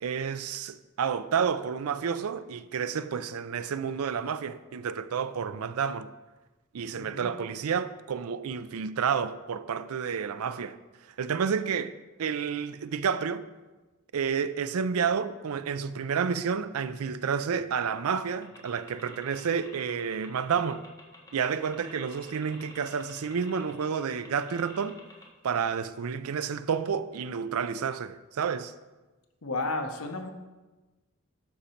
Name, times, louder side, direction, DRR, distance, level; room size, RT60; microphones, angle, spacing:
voice 1, 0.0-6.1 6.7-10.8 11.2-13.4 14.1-20.9 21.3-25.0 25.4-28.7, right 6 dB, 85° right, 0.4 m, -30 dB
voice 2, 7.0-7.3 29.4-30.3, left 2 dB, 75° left, 1.0 m, -32 dB
sound 1, 18.4-25.2, left 2 dB, 15° left, 1.3 m, -50 dB
12.0 x 5.2 x 4.4 m
head